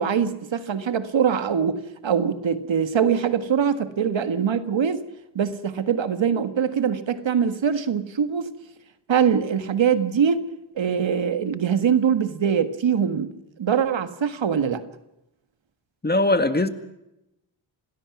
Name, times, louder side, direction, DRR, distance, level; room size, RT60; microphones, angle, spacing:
voice 1, 0.0-5.0 5.4-8.5 9.1-10.4 10.8-13.3 13.6-14.8, right 7 dB, 70° right, 10 dB, 1.7 m, -23 dB
voice 2, 16.0-16.7, left 2 dB, 20° left, 9 dB, 1.9 m, -20 dB
27.0 x 19.5 x 6.1 m, 0.88 s
cardioid pair, 85°, 47 cm